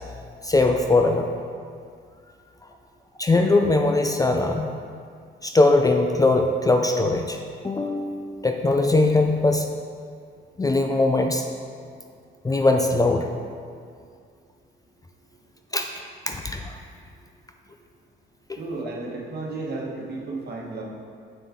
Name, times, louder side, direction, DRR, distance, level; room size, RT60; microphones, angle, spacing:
voice 1, 0.4-1.3 3.2-4.8 5.4-7.4 7.6-9.7 10.6-11.5 12.4-13.3 15.7-15.9 16.3-16.8, left 2 dB, 20° left, 4 dB, 0.4 m, -21 dB
voice 2, 18.5-20.8, right 3 dB, 55° right, -2 dB, 1.3 m, -33 dB
6.9 x 5.4 x 3.7 m, 2.2 s
cardioid pair, 90°, 20 cm